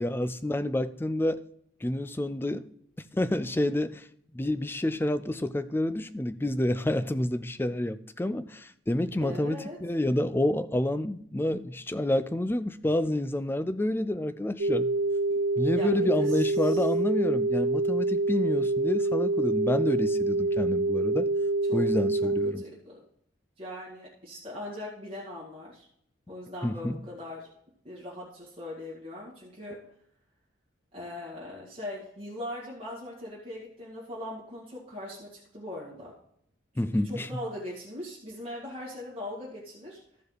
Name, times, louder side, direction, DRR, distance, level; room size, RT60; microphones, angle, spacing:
voice 1, 0.0-1.4 1.8-2.6 3.1-4.1 4.3-14.9 15.6-21.3 21.7-22.6 26.6-27.0 36.8-37.3, left 1 dB, 10° left, 13 dB, 0.3 m, -28 dB
voice 2, 9.2-9.8 15.3-15.4 15.8-16.8 21.7-21.9 22.2-23.0 23.6-25.9 26.3-27.5 27.8-29.9 30.9-36.2 36.8-40.0, left 1 dB, 30° right, -6 dB, 2.2 m, -40 dB
sound 1, 14.6-22.5, right 2 dB, 75° right, 0.5 m, -26 dB
14.5 x 5.4 x 4.0 m, 0.69 s
head